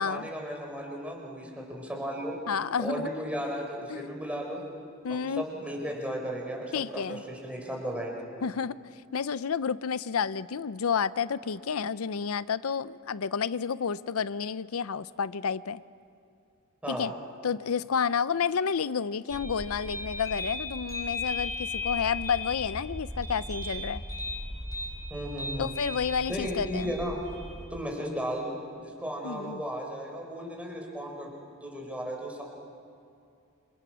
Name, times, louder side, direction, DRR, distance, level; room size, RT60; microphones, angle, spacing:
voice 1, 0.0-2.4 2.8-4.7 5.1-8.3 16.8-17.1 25.1-25.7 26.3-27.2 27.7-31.3 31.6-32.4, equal, 5° right, -1 dB, 4.7 m, -35 dB
voice 2, 2.5-3.1 3.9-4.1 5.0-5.4 6.7-7.2 8.4-8.8 9.1-15.8 16.9-17.1 17.4-24.0 25.6-26.9 29.2-29.6, left 6 dB, 75° left, 17 dB, 0.5 m, -30 dB
sound 1, 19.3-27.7, left 2 dB, 15° left, 7.0 m, -36 dB
28.0 x 27.0 x 6.3 m, 2.5 s
head